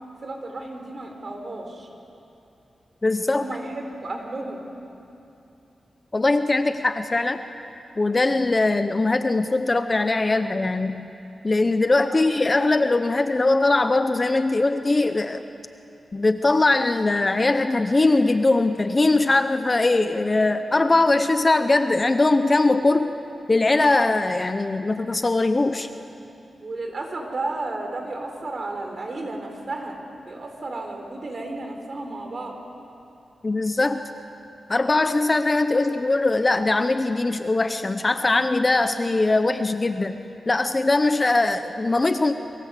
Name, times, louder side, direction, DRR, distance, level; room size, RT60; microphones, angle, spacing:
voice 1, 0.2-1.9 3.2-4.6 12.1-12.3 26.6-30.0 30.3-32.5, right 2 dB, 40° right, 3 dB, 4.0 m, -33 dB
voice 2, 3.0-3.4 6.1-7.4 8.0-11.1 11.4-15.4 16.1-23.1 23.5-25.9 33.4-34.0 34.7-40.2 40.5-42.3, left 2 dB, 25° left, 9 dB, 0.8 m, -21 dB
30.0 x 22.5 x 8.3 m, 2.7 s
wide cardioid pair, 170°, 0 cm